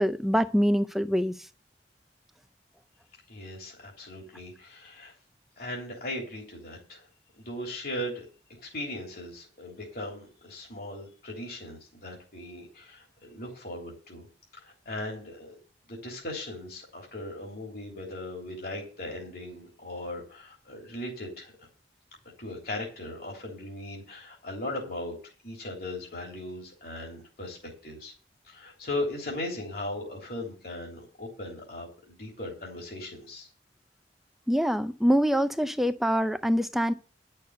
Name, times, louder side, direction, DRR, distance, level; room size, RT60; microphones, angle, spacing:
voice 1, 0.0-1.3 34.5-36.9, equal, ahead, 0.6 m, -24 dB
voice 2, 3.3-5.1 5.6-7.1 7.4-8.2 8.6-14.3 14.5-15.6 15.9-21.7 22.4-25.2 25.4-28.1 28.4-33.5, left 1 dB, 55° left, 3.3 m, -38 dB
11.0 x 6.6 x 6.8 m
head